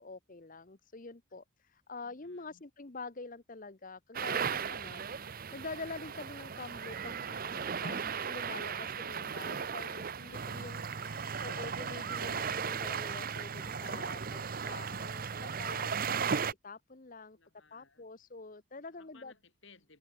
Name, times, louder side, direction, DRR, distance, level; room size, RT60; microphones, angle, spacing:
voice 1, 0.0-5.0 5.5-10.9 11.4-16.4 16.6-17.4 17.7-19.3, left 3 dB, 40° left, 1.0 m, -46 dB
voice 2, 2.0-2.6 10.1-12.5 17.3-18.0 18.9-20.0, left 4 dB, 60° left, 7.0 m, -61 dB
sound 1, 4.1-16.5, right 6 dB, 40° right, 0.6 m, -36 dB
open air
head